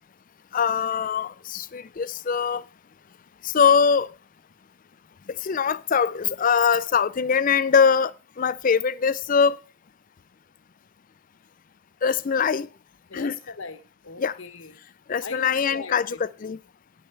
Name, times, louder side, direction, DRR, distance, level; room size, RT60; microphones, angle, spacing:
voice 1, 0.5-2.6 3.4-4.1 5.4-8.1 8.4-9.6 12.0-12.7 13.1-13.4 14.2-14.4 15.1-16.6, left 6 dB, 40° left, 0.4 m, -22 dB
voice 2, 13.1-14.7 15.2-16.2, left 4 dB, 65° left, 1.1 m, -39 dB
10.0 x 9.9 x 3.3 m
head